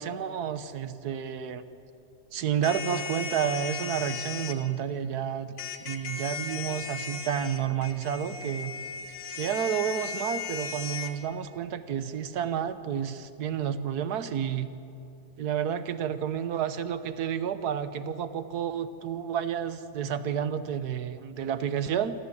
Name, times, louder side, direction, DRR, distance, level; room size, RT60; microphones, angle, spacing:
voice 1, 0.0-1.6 2.3-5.5 5.8-8.7 9.3-14.7 15.4-22.1, right 8 dB, 70° right, 11 dB, 1.5 m, -30 dB
sound 1, 2.6-4.6 5.6-11.1, left 6 dB, 75° left, 1.9 m, -36 dB
27.5 x 13.5 x 8.4 m, 2.7 s
omnidirectional pair, 1.8 m